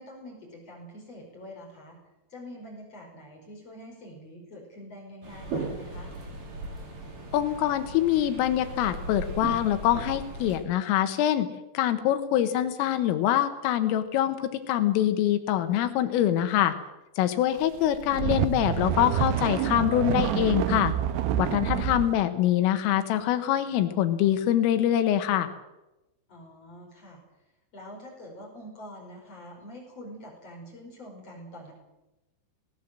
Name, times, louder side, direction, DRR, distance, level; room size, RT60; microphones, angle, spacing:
voice 1, 0.0-2.0 2.3-6.1 26.3-27.2 27.7-31.7, equal, 30° left, 0 dB, 5.7 m, -45 dB
sound 1, 5.2-10.6, right 2 dB, 45° right, 5.0 m, -37 dB
voice 2, 7.3-11.5 11.8-16.8 17.2-20.9 21.4-25.5, left 12 dB, 80° left, 10 dB, 3.9 m, -24 dB
sound 2, 17.8-22.1, right 10 dB, 75° right, 2.6 m, -27 dB
20.0 x 18.5 x 7.7 m, 0.99 s
omnidirectional pair, 5.8 m